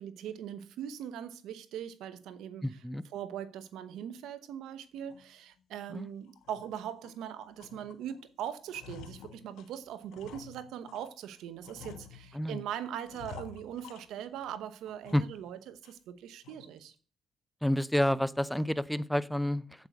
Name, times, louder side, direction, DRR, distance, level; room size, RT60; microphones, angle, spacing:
voice 1, 0.0-2.8 3.1-16.9, right 9 dB, 85° right, 0.9 m, -41 dB
voice 2, 2.6-3.0 5.9-6.1 12.3-12.6 15.1-15.2 17.6-19.9, left 1 dB, ahead, 0.5 m, -29 dB
sound 1, 5.1-5.3 5.7-5.9 6.3-7.2 7.6-8.2 8.5-11.1 11.6-12.6 13.1-14.5 14.9-15.5 15.8-15.9 16.4-16.8, left 8 dB, 85° left, 1.2 m, -50 dB
8.3 x 8.0 x 6.2 m
cardioid pair, 90°, 0 cm